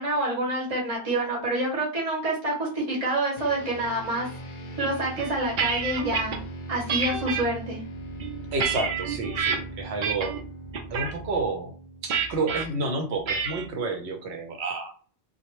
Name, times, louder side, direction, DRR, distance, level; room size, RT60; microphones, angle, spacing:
voice 1, 0.0-4.3 4.8-6.4 6.7-7.8, right 1 dB, 35° right, -5 dB, 0.9 m, -27 dB
sound 1, 3.4-13.0, right 1 dB, 60° left, 0.7 m, -40 dB
sound 2, 5.2-6.4 6.9-7.4 8.0-9.6 10.0-10.4 10.7-11.1 12.1-12.6 13.3-13.6, right 6 dB, 55° right, 0.7 m, -28 dB
voice 2, 8.5-10.3 10.9-11.7 12.0-14.9, right 3 dB, 80° right, 4 dB, 0.9 m, -30 dB
2.3 x 2.1 x 2.9 m, 0.41 s
omnidirectional pair, 1.1 m